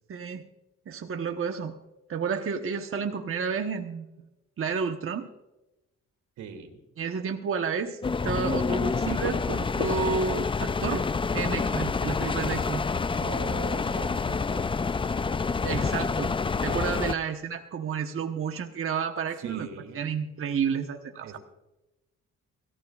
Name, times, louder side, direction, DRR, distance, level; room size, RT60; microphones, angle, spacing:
voice 1, 0.1-0.5 0.9-1.7 2.1-4.1 4.6-5.3 7.0-11.0 11.3-12.8 15.6-16.3 16.6-19.7 19.9-21.4, right 6 dB, 45° right, 4 dB, 1.1 m, -31 dB
voice 2, 6.4-6.8 13.2-14.8 19.4-20.0 21.2-21.4, right 6 dB, 85° right, 6 dB, 2.8 m, -41 dB
sound 1, 8.0-17.1, left 4 dB, 20° left, 0.4 m, -28 dB
25.5 x 14.5 x 2.4 m, 0.97 s
cardioid pair, 90°, 30 cm